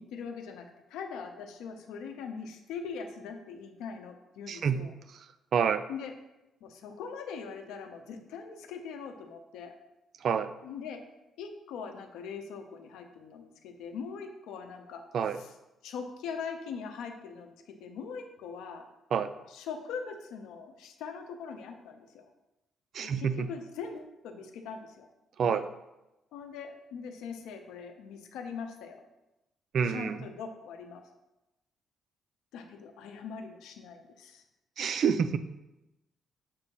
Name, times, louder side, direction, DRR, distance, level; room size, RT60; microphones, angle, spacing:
voice 1, 0.0-5.0 5.9-6.1 6.6-9.7 10.6-11.0 11.4-15.5 15.8-18.9 19.5-22.3 23.0-25.1 25.4-25.6 26.3-29.1 29.8-31.0 32.5-34.4, left 6 dB, 90° left, 6 dB, 0.7 m, -42 dB
voice 2, 4.5-4.8 5.5-5.8 10.2-10.5 15.1-15.4 19.1-19.3 22.9-23.5 25.4-25.6 29.7-30.2 34.8-35.4, right 7 dB, 60° right, 11 dB, 0.4 m, -27 dB
6.8 x 2.7 x 5.3 m, 0.96 s
cardioid pair, 90°, 0 cm